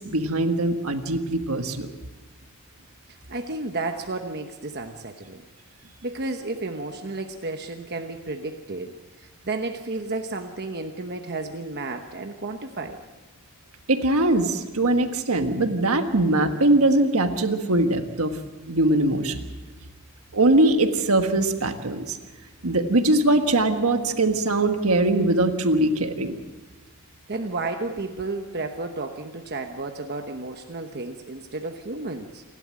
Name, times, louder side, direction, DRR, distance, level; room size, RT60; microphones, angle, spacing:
voice 1, 0.0-1.9 13.9-18.4 18.7-19.5 20.3-22.2 22.6-26.4, right 2 dB, 80° right, 6 dB, 1.5 m, -21 dB
voice 2, 3.1-5.4 6.0-8.9 9.2-13.0 27.3-32.4, right 3 dB, 50° right, 5 dB, 1.1 m, -32 dB
29.0 x 12.0 x 7.6 m, 1.3 s
head